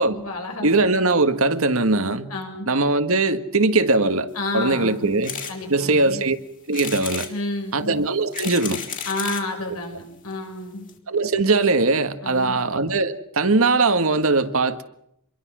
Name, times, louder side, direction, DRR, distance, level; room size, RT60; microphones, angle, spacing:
voice 1, 0.0-0.7 2.3-2.7 4.3-5.2 5.5-6.2 7.3-8.0 9.0-10.9 12.2-12.6, left 2 dB, 80° left, 6.5 m, -30 dB
voice 2, 0.6-2.3 2.7-5.4 5.7-6.4 6.7-7.3 7.7-8.8 11.1-14.8, right 3 dB, 70° right, 1.7 m, -20 dB
sound 1, 5.2-5.6 6.0-6.1 6.7-7.3 8.1-9.5 10.3-10.4 10.6-10.7 10.9-11.0, left 7 dB, 35° left, 4.1 m, -32 dB
27.0 x 22.5 x 6.3 m
head